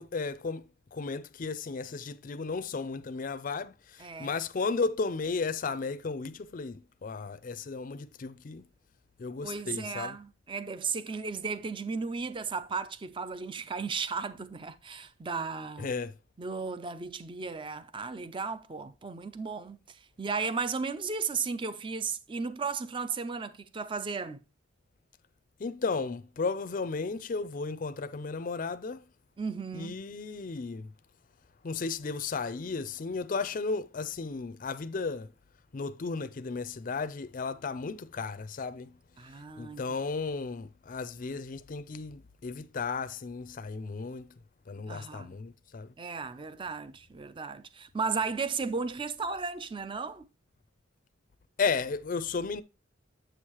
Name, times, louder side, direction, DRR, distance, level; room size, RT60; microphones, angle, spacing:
voice 1, 0.0-8.6 9.2-10.2 15.8-16.1 25.6-29.0 29.7-30.9 31.6-35.3 35.7-38.9 39.6-44.3 44.7-45.9 51.6-52.6, left 4 dB, 45° left, 0.4 m, -34 dB
voice 2, 4.0-4.3 9.4-15.9 16.4-24.4 29.4-30.0 39.2-39.8 44.9-45.4 46.0-50.3, right 5 dB, 25° right, 0.5 m, -35 dB
7.8 x 6.4 x 3.0 m
head